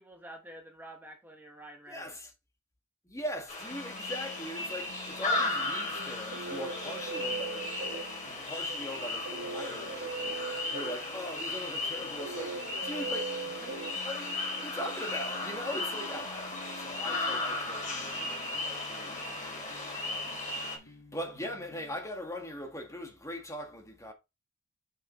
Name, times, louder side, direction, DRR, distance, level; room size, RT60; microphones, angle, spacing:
voice 1, 0.0-2.1, right 1 dB, 10° right, 1.4 m, -49 dB
voice 2, 1.9-2.3 3.0-24.1, equal, 15° left, 1.7 m, -41 dB
sound 1, 3.5-20.8, left 2 dB, 40° left, 3.5 m, -36 dB
sound 2, 3.7-22.0, left 2 dB, 70° left, 2.3 m, -52 dB
sound 3, 5.9-14.6, right 4 dB, 80° right, 1.8 m, -40 dB
7.1 x 5.8 x 4.3 m
head